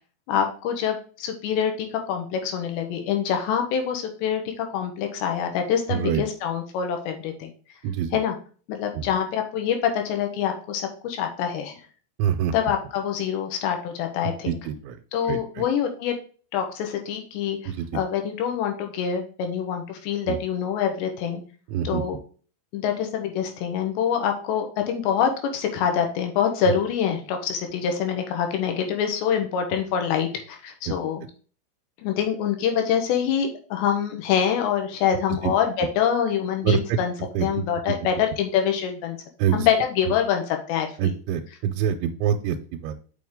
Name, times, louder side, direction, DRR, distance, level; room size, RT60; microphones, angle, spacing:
voice 1, 0.3-7.5 8.1-8.4 8.7-11.8 12.5-14.6 15.1-16.2 16.5-21.4 21.8-22.2 22.7-31.2 32.0-37.1 37.4-39.2 39.5-41.1, left 8 dB, 80° left, 4 dB, 3.1 m, -25 dB
voice 2, 5.9-6.2 7.8-8.2 8.9-9.1 12.2-12.5 14.2-15.0 15.2-15.6 17.7-18.0 20.3-20.4 21.7-22.0 26.7-26.8 30.9-31.0 35.4-35.5 36.6-37.0 37.3-38.0 39.4-39.7 41.0-43.0, right 9 dB, 90° right, 5 dB, 3.0 m, -26 dB
6.5 x 6.4 x 3.6 m, 0.40 s
omnidirectional pair, 5.3 m